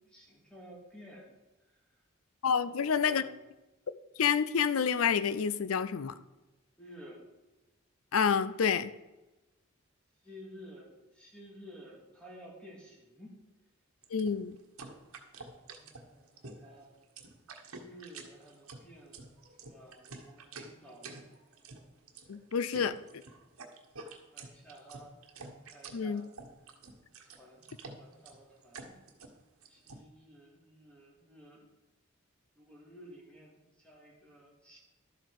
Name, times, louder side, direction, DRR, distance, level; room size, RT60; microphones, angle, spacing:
voice 1, 0.1-1.3 2.6-3.4 6.8-7.2 10.2-13.4 15.4-16.9 17.8-19.3 19.6-21.3 24.3-25.1 25.6-26.3 27.2-27.7 28.0-29.0 29.7-31.7 32.6-34.8, equal, 5° left, -3 dB, 2.2 m, -53 dB
voice 2, 2.4-3.2 3.9-6.1 8.1-8.9 14.1-14.6 22.3-23.0 25.9-26.2, left 6 dB, 75° left, 14 dB, 0.5 m, -28 dB
sound 1, 14.0-30.0, right 3 dB, 80° right, 1.4 m, -49 dB
12.0 x 7.8 x 4.8 m, 1.1 s
head